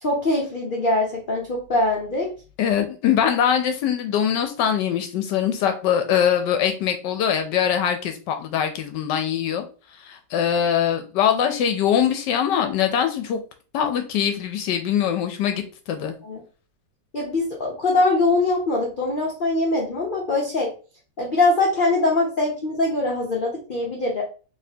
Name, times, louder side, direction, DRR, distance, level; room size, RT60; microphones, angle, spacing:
voice 1, 0.0-2.3 16.2-16.4 17.1-20.7 21.2-24.2, left 2 dB, 45° left, -2 dB, 0.6 m, -22 dB
voice 2, 2.6-9.6 10.0-13.4 13.7-16.1, left 9 dB, 80° left, 6 dB, 1.2 m, -22 dB
4.2 x 3.2 x 2.7 m, 0.36 s
omnidirectional pair, 1.9 m